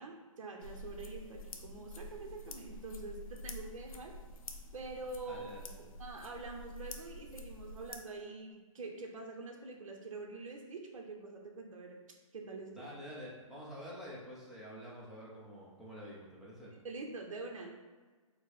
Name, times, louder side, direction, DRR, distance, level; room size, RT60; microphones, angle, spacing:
voice 1, 0.0-4.1 4.7-5.5 5.8-12.0 12.3-12.9 16.7-17.8, right 3 dB, 70° right, 1 dB, 0.7 m, -45 dB
sound 1, 0.6-8.0, left 2 dB, 80° left, 0.6 m, -48 dB
voice 2, 5.3-5.9 12.7-16.7, equal, ahead, -7 dB, 0.6 m, -48 dB
4.5 x 2.1 x 4.2 m, 1.4 s
hypercardioid pair, 150°, 18 cm